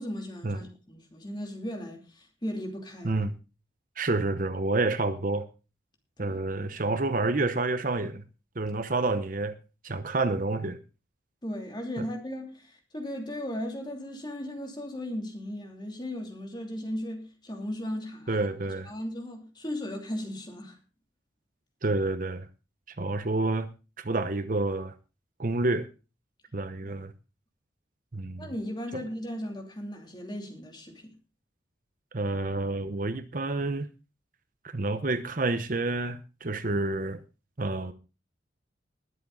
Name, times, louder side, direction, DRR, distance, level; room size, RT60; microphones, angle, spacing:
voice 1, 0.0-3.2 6.2-6.7 11.4-20.8 26.8-27.0 28.4-31.1, left 1 dB, 25° left, 2.9 m, -37 dB
voice 2, 4.0-5.5 6.2-8.2 8.6-9.6 9.8-10.8 12.0-12.1 18.3-18.9 21.8-22.5 23.0-23.7 24.0-24.9 25.4-25.9 26.5-27.1 28.1-28.5 28.9-29.0 32.1-33.9 34.6-37.2 37.6-37.9, right 2 dB, 45° right, 0.9 m, -29 dB
20.5 x 7.3 x 3.9 m
head